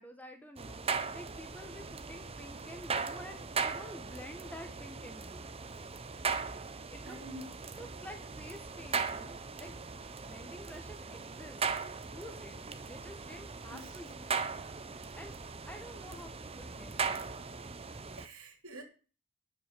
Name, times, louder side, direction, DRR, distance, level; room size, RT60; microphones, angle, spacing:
voice 1, 0.0-5.5 6.9-9.9 10.3-11.6 12.0-12.6 12.9-14.4 15.2-15.4 15.7-17.3, left 1 dB, 5° left, 6 dB, 1.5 m, -50 dB
sound 1, 0.6-18.3, right 5 dB, 25° right, 0.8 m, -39 dB
voice 2, 7.0-7.5 13.7-13.9 18.2-18.8, right 1 dB, 70° right, 3 dB, 3.2 m, -46 dB
11.5 x 6.0 x 7.9 m, 0.38 s
head